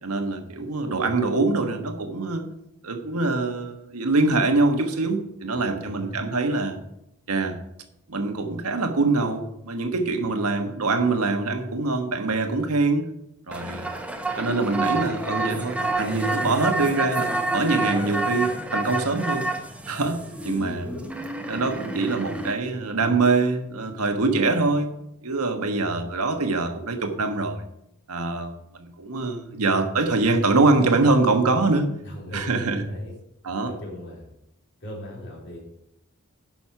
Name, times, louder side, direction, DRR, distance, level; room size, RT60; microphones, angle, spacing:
voice 1, 0.0-2.4 2.8-6.8 7.3-7.6 8.1-13.0 13.5-13.9 14.4-19.5 19.9-20.2 20.4-20.9 21.5-24.9 25.2-27.6 28.1-28.5 28.8-31.9 32.3-32.8 33.4-33.7, right 3 dB, 85° right, 5 dB, 1.4 m, -24 dB
voice 2, 5.5-6.2 20.4-21.1 32.0-33.1 33.6-34.3 34.8-35.6, left 1 dB, 55° left, -3 dB, 4.0 m, -38 dB
sound 1, 13.5-22.5, right 2 dB, 5° right, 0.8 m, -29 dB
10.5 x 6.2 x 5.9 m, 0.81 s
head